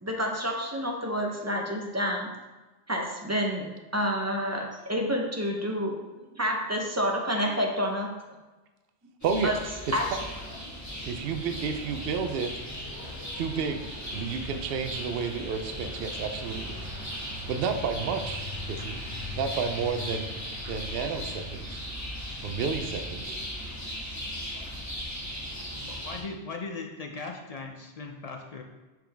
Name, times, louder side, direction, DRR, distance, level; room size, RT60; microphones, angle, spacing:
voice 1, 0.0-2.3 2.9-3.7 3.9-5.9 6.3-8.1 9.4-9.5 9.9-10.0, equal, 15° right, 0 dB, 0.7 m, -28 dB
sound 1, 9.2-26.2, left 1 dB, 15° left, 1.4 m, -37 dB
voice 2, 9.2-9.8 11.0-12.5 13.3-16.8 17.5-19.0 19.3-20.3 20.7-21.8 22.4-23.4, right 5 dB, 65° right, 7 dB, 0.7 m, -31 dB
voice 3, 25.9-28.6, left 4 dB, 45° left, 2 dB, 0.5 m, -38 dB
7.5 x 3.8 x 3.4 m, 1.2 s
omnidirectional pair, 1.1 m